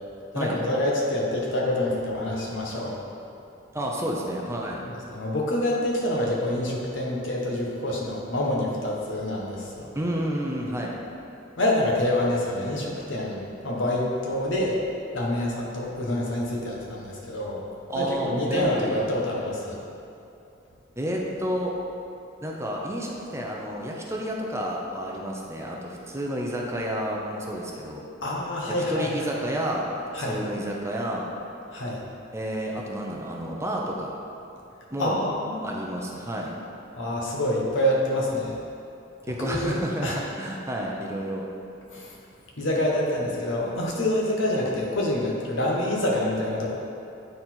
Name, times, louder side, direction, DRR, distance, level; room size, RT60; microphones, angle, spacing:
voice 1, 0.3-2.9 4.8-9.6 11.6-14.7 15.1-17.6 17.9-19.8 28.2-29.1 30.1-30.4 31.7-32.0 35.0-35.7 37.0-38.5 39.4-39.8 40.0-40.2 41.9-42.1 42.6-46.7, left 1 dB, 75° left, -3 dB, 1.3 m, -26 dB
voice 2, 3.7-4.8 9.9-11.0 17.9-19.1 21.0-21.7 22.4-28.1 28.9-29.9 30.2-31.3 32.3-34.1 34.9-35.2 35.6-36.5 39.3-41.5, right 1 dB, 15° right, -2 dB, 0.7 m, -30 dB
9.0 x 4.1 x 4.5 m, 2.7 s
head